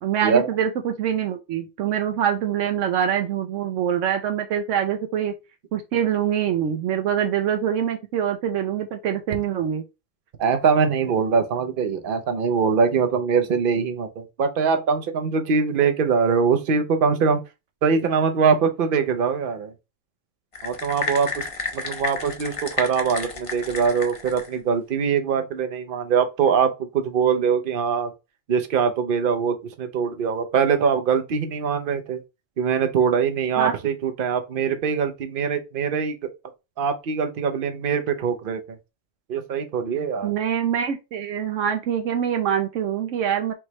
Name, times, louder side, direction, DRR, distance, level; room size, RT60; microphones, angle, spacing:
voice 1, 0.0-5.3 5.7-9.8 33.6-33.8 40.2-43.5, right 9 dB, 80° right, 0.9 m, -24 dB
voice 2, 10.4-17.4 17.8-19.7 20.6-21.5 21.7-28.1 28.5-32.2 32.6-36.2 36.8-38.8 39.3-40.3, right 6 dB, 50° right, 0.8 m, -22 dB
sound 1, 20.5-24.6, left 4 dB, 30° left, 0.7 m, -31 dB
4.6 x 3.1 x 2.9 m
omnidirectional pair, 1.3 m